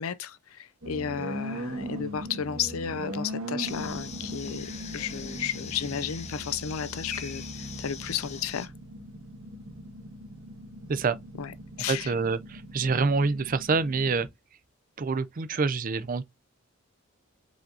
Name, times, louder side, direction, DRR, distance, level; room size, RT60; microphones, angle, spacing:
voice 1, 0.0-4.7 4.9-8.7 11.4-12.1, left 8 dB, 75° left, 0.5 m, -33 dB
sound 1, 0.8-14.3, equal, 70° right, 1.6 m, -40 dB
sound 2, 3.6-8.7, left 6 dB, 30° left, 0.6 m, -42 dB
voice 2, 11.9-14.3 15.0-16.2, right 4 dB, 40° right, 0.4 m, -26 dB
4.9 x 3.9 x 2.6 m
head